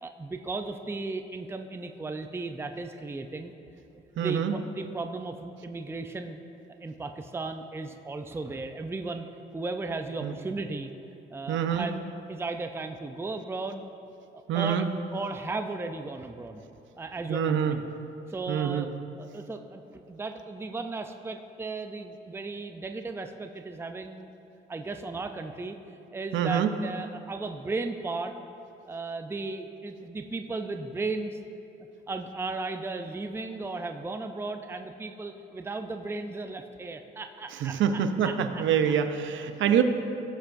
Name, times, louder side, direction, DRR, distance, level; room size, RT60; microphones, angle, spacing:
voice 1, 0.0-3.5 4.2-6.4 6.8-9.3 9.5-10.9 11.3-12.0 12.3-13.8 14.3-14.9 15.1-16.6 17.0-17.8 18.3-18.9 19.2-24.3 24.7-25.8 26.1-28.3 28.9-31.4 32.1-38.6 39.6-39.8, right 3 dB, 10° right, 6 dB, 0.5 m, -35 dB
voice 2, 4.2-4.5 10.2-10.3 11.5-11.9 14.5-14.9 17.3-17.8 18.5-18.9 26.3-26.7 37.6-39.8, right 8 dB, 75° right, 8 dB, 0.7 m, -25 dB
16.5 x 7.0 x 2.6 m, 3.0 s
cardioid pair, 90°, 20 cm